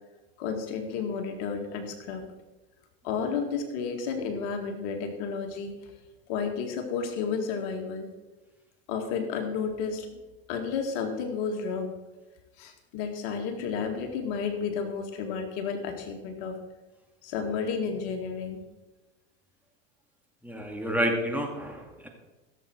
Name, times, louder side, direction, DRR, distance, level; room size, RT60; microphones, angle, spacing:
voice 1, 0.4-2.3 3.0-5.9 6.3-8.1 8.9-10.2 10.5-11.9 12.6-16.6 17.2-18.6, left 5 dB, 60° left, 5 dB, 2.1 m, -32 dB
voice 2, 20.4-22.1, equal, 5° right, 1 dB, 2.2 m, -29 dB
16.0 x 7.6 x 4.6 m, 1.1 s
hypercardioid pair, 90°, 33 cm